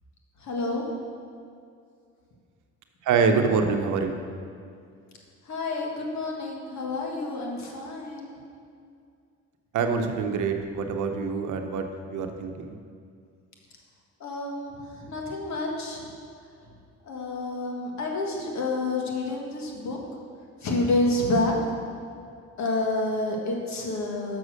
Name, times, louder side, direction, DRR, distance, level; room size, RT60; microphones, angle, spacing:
voice 1, 0.4-0.8 5.5-8.4 14.2-16.0 17.1-20.0 20.6-21.6 22.6-24.4, left 2 dB, 65° left, 0 dB, 1.6 m, -29 dB
voice 2, 3.0-4.1 9.7-12.8, right 5 dB, 75° right, 5 dB, 0.8 m, -25 dB
6.3 x 6.0 x 6.4 m, 2.3 s
cardioid pair, 90°, 30 cm